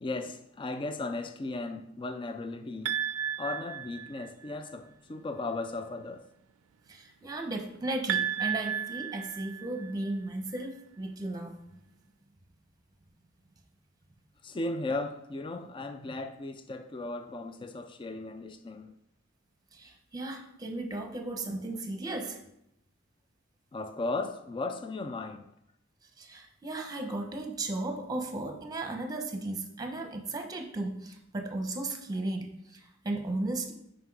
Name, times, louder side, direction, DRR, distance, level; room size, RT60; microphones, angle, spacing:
voice 1, 0.0-2.9 3.4-6.3 14.4-18.9 23.7-25.5, left 2 dB, 25° left, 0.3 m, -36 dB
sound 1, 2.9-4.5 8.1-10.1, right 9 dB, 80° right, 0.4 m, -33 dB
voice 2, 6.9-11.8 16.1-16.2 19.7-22.4 26.2-33.7, right 2 dB, 20° right, 0.9 m, -35 dB
5.9 x 5.1 x 4.7 m
head